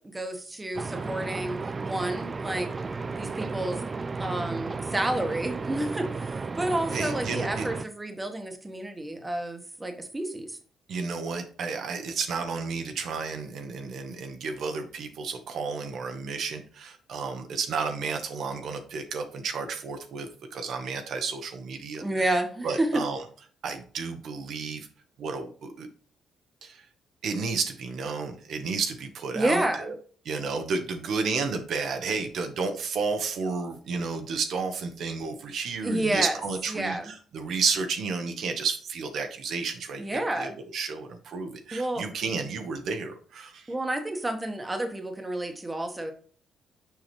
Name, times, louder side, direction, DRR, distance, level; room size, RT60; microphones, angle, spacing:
voice 1, 0.0-2.7 3.2-3.8 4.2-10.6 22.0-23.0 29.3-29.9 35.8-36.4 36.7-37.1 40.0-40.6 41.7-42.0 43.7-46.1, right 1 dB, 15° right, 5 dB, 1.3 m, -30 dB
sound 1, 0.7-7.8, right 4 dB, 30° right, 0.4 m, -33 dB
voice 2, 6.9-7.7 10.9-22.4 22.6-23.2 23.6-24.9 25.2-25.9 26.6-26.8 27.2-29.9 30.2-43.7, right 5 dB, 70° right, 5 dB, 1.0 m, -32 dB
6.7 x 5.0 x 3.2 m, 0.43 s
cardioid pair, 90°, 0 cm